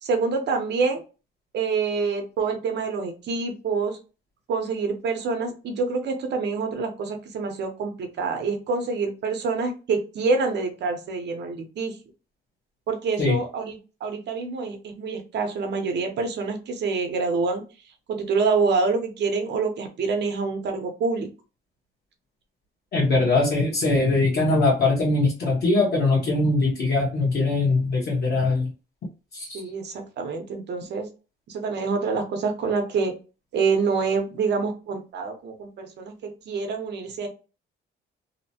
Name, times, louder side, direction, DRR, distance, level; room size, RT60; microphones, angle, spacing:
voice 1, 0.0-1.0 1.5-4.0 4.5-12.0 12.9-17.6 18.1-21.3 23.1-23.3 29.5-31.1 31.5-33.1 33.5-37.3, right 4 dB, 60° right, 5 dB, 0.8 m, -26 dB
voice 2, 22.9-28.7 29.3-29.6, left 2 dB, 55° left, -4 dB, 1.0 m, -21 dB
2.8 x 2.1 x 2.7 m, 0.33 s
cardioid pair, 125°, 20 cm